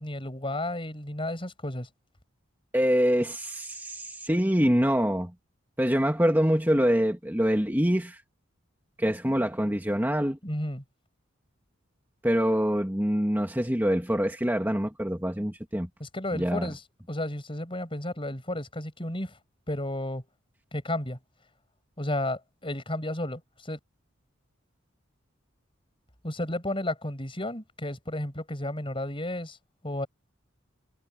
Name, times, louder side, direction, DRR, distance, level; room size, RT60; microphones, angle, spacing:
voice 1, 0.0-1.9 10.4-10.8 16.0-16.8 17.1-19.4 19.7-20.2 20.7-21.2 22.0-23.8 26.2-29.6 29.8-30.1, left 1 dB, 25° left, 7.5 m, -32 dB
voice 2, 2.7-5.3 5.8-8.2 9.0-10.4 12.2-15.9 16.3-16.7, equal, 10° right, 2.1 m, -25 dB
head